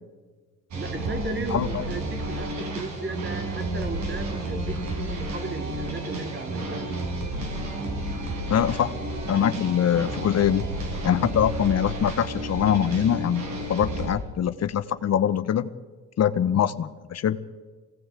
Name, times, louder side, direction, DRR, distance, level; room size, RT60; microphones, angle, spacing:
sound 1, 0.7-14.1, right 1 dB, 70° right, 6.3 m, -31 dB
voice 1, 0.8-6.9, right 3 dB, 40° right, 4 dB, 3.6 m, -35 dB
voice 2, 1.5-1.8 8.5-9.0 9.3-10.7 11.0-15.7 16.2-17.4, left 9 dB, 60° left, 12 dB, 1.1 m, -23 dB
23.0 x 17.5 x 8.2 m, 1.4 s
cardioid pair, 90°, 30 cm